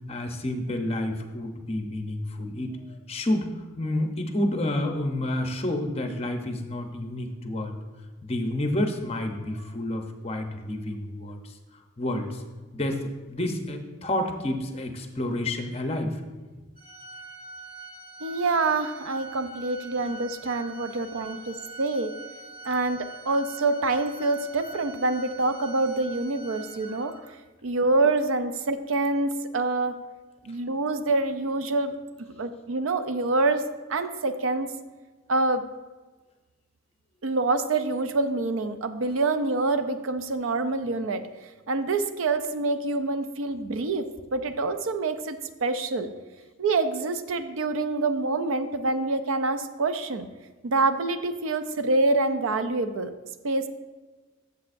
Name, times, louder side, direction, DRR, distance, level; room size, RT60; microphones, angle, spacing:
voice 1, 0.1-3.5 3.8-7.7 8.2-12.4 12.7-16.2, left 1 dB, 30° left, 5 dB, 0.7 m, -29 dB
Organ, 16.8-27.4, right 3 dB, 40° right, 1.6 m, -44 dB
voice 2, 18.2-22.1 22.6-27.2 27.6-30.0 30.5-31.9 32.4-34.7 35.3-35.7 37.2-41.2 41.7-46.1 46.6-50.3 50.6-53.1 53.4-53.7, right 3 dB, 75° right, 10 dB, 0.5 m, -26 dB
12.0 x 7.1 x 2.6 m, 1.3 s
head